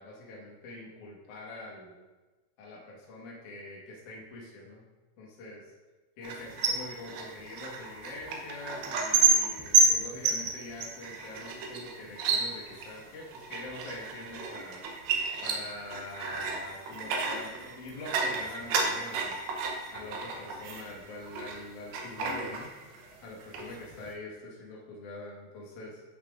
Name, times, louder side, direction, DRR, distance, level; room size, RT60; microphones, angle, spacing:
voice 1, 0.0-2.0 2.6-4.8 5.2-5.7 6.2-14.8 15.4-19.4 19.9-22.7 23.2-26.0, left 2 dB, 60° left, -4 dB, 2.1 m, -44 dB
sound 1, 6.2-21.6 21.9-23.1 23.4-24.1, right 4 dB, 85° right, 2.1 m, -31 dB
11.0 x 5.8 x 2.5 m, 1.2 s
omnidirectional pair, 5.6 m